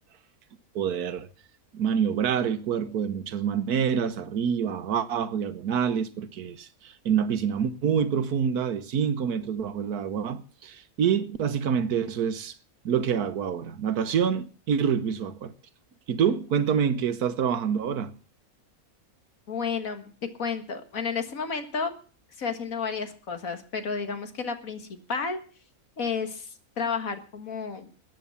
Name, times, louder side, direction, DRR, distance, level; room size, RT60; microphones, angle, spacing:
voice 1, 0.7-1.3 1.7-12.5 12.8-15.5 16.1-18.1, right 7 dB, 90° right, 1.5 m, -27 dB
voice 2, 19.5-20.1 20.4-22.0 22.4-25.4 26.0-27.9, left 5 dB, 65° left, 2.1 m, -31 dB
14.0 x 9.4 x 7.0 m
omnidirectional pair, 1.6 m